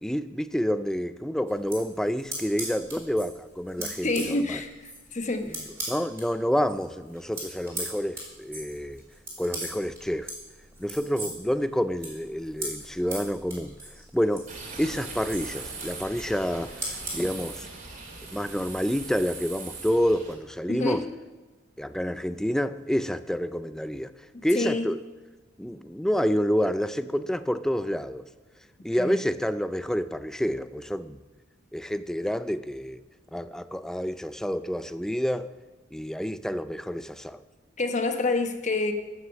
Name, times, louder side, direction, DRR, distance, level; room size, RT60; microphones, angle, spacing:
voice 1, 0.0-4.6 5.5-5.6 5.9-9.0 9.4-10.3 10.8-13.7 14.1-14.5 14.8-17.7 18.3-21.0 21.8-25.0 25.6-28.2 28.8-31.2 31.7-33.0 33.3-35.5 35.9-37.4, equal, 5° left, 13 dB, 0.3 m, -28 dB
sound 1, 1.5-6.3 6.6-17.3, right 1 dB, 15° right, 3.7 m, -39 dB
voice 2, 4.0-5.6 20.7-21.0 24.3-24.9 29.0-29.2 37.8-38.9, left 2 dB, 40° left, 6 dB, 1.0 m, -28 dB
sound 2, 14.5-20.3, right 4 dB, 40° right, 2.5 m, -40 dB
14.5 x 6.3 x 7.1 m, 1.2 s
head